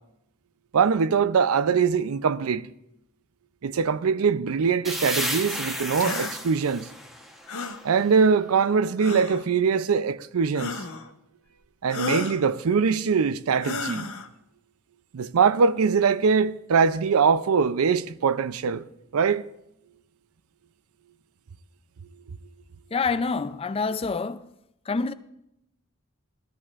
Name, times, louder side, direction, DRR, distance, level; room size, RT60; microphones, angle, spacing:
voice 1, 0.7-2.7 3.6-6.9 7.8-10.8 11.8-14.1 15.1-18.8 19.1-19.5, right 5 dB, 90° right, 0.5 m, -22 dB
sound 1, 4.8-8.5, equal, ahead, 1.0 m, -33 dB
sound 2, 6.0-6.3 7.5-7.8 9.0-9.4 10.6-11.1 11.9-12.4 13.6-14.3, left 3 dB, 85° left, 0.9 m, -32 dB
voice 2, 22.9-24.5 24.8-25.1, left 4 dB, 25° left, 0.4 m, -27 dB
19.0 x 13.5 x 2.5 m
head